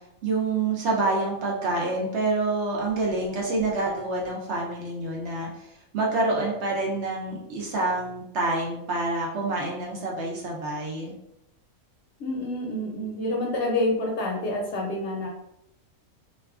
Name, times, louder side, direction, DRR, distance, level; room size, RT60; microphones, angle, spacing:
voice 1, 0.2-5.7 5.9-11.1, right 2 dB, 65° right, -2 dB, 0.8 m, -27 dB
voice 2, 12.2-15.3, left 1 dB, 65° left, -1 dB, 0.8 m, -28 dB
2.4 x 2.4 x 2.3 m, 0.81 s
omnidirectional pair, 1.4 m